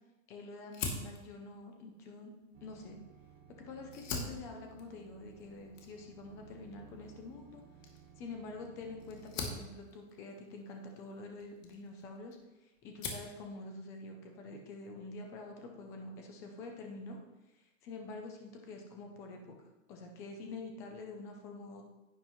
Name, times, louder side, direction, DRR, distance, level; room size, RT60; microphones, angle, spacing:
voice 1, 0.3-2.3 2.6-3.0 3.6-7.6 8.2-12.4 12.6-17.2 17.8-19.6 19.9-21.8, left 3 dB, 10° left, 3 dB, 0.3 m, -47 dB
Fire, 0.7-3.3 3.8-12.4 12.8-13.4, left 4 dB, 75° left, 2.4 m, -44 dB
sound 1, 2.5-9.7, right 7 dB, 30° right, 0.9 m, -57 dB
10.5 x 9.7 x 3.0 m, 1.0 s
supercardioid pair, 160°, 38 cm